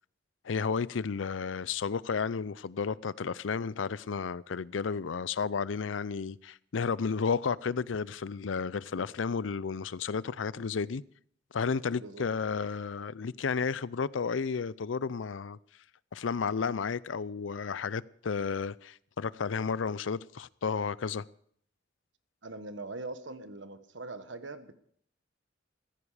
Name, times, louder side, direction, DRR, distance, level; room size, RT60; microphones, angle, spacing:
voice 1, 0.4-11.0 11.5-15.6 16.1-21.2, left 5 dB, 90° left, 0.5 m, -32 dB
voice 2, 12.0-12.3 22.4-24.7, right 2 dB, 75° right, 1.4 m, -42 dB
15.0 x 15.0 x 4.9 m
head